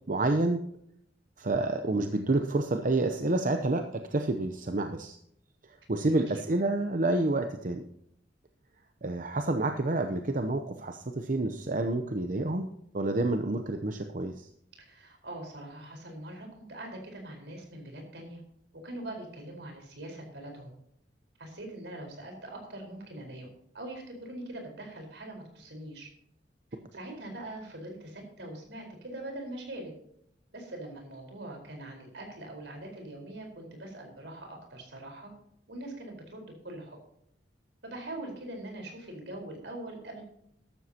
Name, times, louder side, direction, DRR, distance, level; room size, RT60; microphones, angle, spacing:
voice 1, 0.1-0.6 1.4-5.2 5.9-7.8 9.0-12.7 12.9-14.5, right 2 dB, 45° right, 6 dB, 0.8 m, -28 dB
voice 2, 14.9-18.4 18.8-20.7 21.4-23.5 23.7-26.1 26.9-29.9 30.5-35.3 35.7-37.0 37.8-40.2, right 1 dB, 75° right, 2 dB, 4.5 m, -42 dB
14.5 x 12.5 x 2.9 m, 0.73 s
head